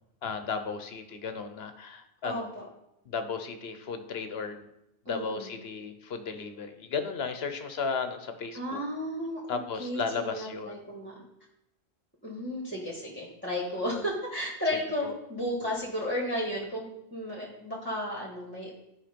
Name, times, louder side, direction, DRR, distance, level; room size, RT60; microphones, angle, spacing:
voice 1, 0.2-2.5 3.1-4.7 5.1-8.8 9.5-10.8 15.0-15.1, left 5 dB, 70° left, 8 dB, 1.1 m, -34 dB
voice 2, 2.2-2.6 5.0-5.5 8.5-10.0 10.3-11.1 12.2-18.7, equal, 10° left, -3 dB, 1.6 m, -33 dB
10.5 x 4.8 x 5.2 m, 0.86 s
omnidirectional pair, 1.1 m